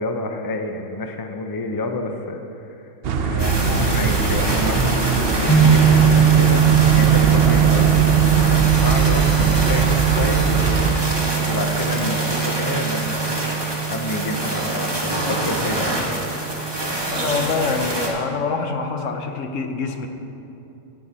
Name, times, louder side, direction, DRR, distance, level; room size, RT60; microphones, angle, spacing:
voice 1, 0.0-2.9 3.2-10.4 11.5-13.3 13.9-16.1, left 2 dB, 30° left, 5 dB, 0.4 m, -29 dB
sound 1, 3.0-10.9, right 4 dB, 55° right, 0.8 m, -21 dB
sound 2, 3.4-18.1, right 1 dB, 20° right, 1.5 m, -26 dB
sound 3, 5.5-17.5, right 10 dB, 10° left, 1.1 m, -20 dB
voice 2, 17.1-20.1, left 4 dB, 70° left, 6 dB, 1.1 m, -25 dB
11.0 x 9.6 x 4.1 m, 2.8 s
omnidirectional pair, 1.4 m